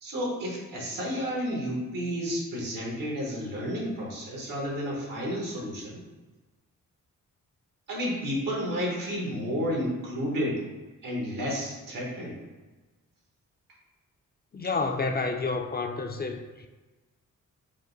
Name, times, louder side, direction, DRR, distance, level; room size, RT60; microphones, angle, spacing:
voice 1, 0.0-6.0 7.9-10.6 11.0-12.4, equal, 80° right, -3 dB, 1.4 m, -31 dB
voice 2, 14.5-16.7, left 3 dB, 30° left, 4 dB, 0.4 m, -30 dB
5.0 x 2.2 x 3.9 m, 1.2 s
cardioid pair, 65°, 32 cm